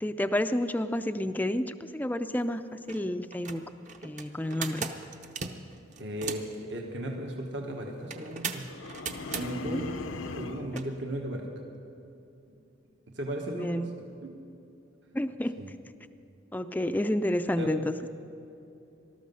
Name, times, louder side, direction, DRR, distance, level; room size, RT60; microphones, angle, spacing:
voice 1, 0.0-3.6 4.0-4.9 9.7-9.8 13.5-14.0 15.1-15.5 16.5-18.1, left 1 dB, 10° left, 9 dB, 0.4 m, -30 dB
sound 1, 2.3-2.4 2.8-3.0 3.3-6.6 8.1-9.5 10.7-10.9, right 5 dB, 35° right, 0.8 m, -37 dB
voice 2, 6.0-8.7 9.3-10.0 10.3-11.5 12.5-12.6 13.1-13.9 14.2-14.3 15.6-15.7 17.6-17.7, right 1 dB, 65° right, 1 dB, 1.4 m, -36 dB
sound 2, 8.7-10.8, left 3 dB, 85° left, 0.7 m, -39 dB
19.5 x 13.0 x 5.5 m, 2.9 s
head